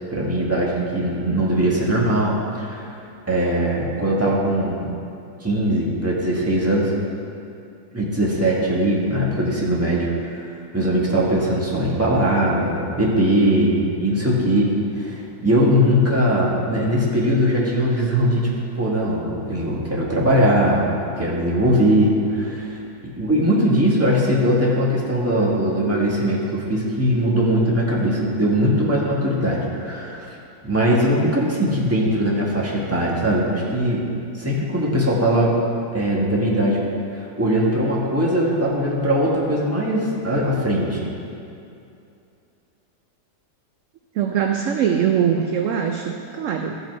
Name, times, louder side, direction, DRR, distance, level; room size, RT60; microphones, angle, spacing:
voice 1, 0.1-2.9 3.3-4.9 5.4-6.9 7.9-10.1 10.3-10.4 10.7-18.5 18.8-20.8 21.2-22.8 23.2-30.2 30.6-34.1 34.4-35.5 35.9-36.8 37.1-41.1, equal, 10° right, -5 dB, 1.5 m, -20 dB
voice 2, 44.1-46.8, right 8 dB, 65° right, 3 dB, 0.8 m, -22 dB
14.0 x 5.6 x 4.6 m, 2.6 s
omnidirectional pair, 1.7 m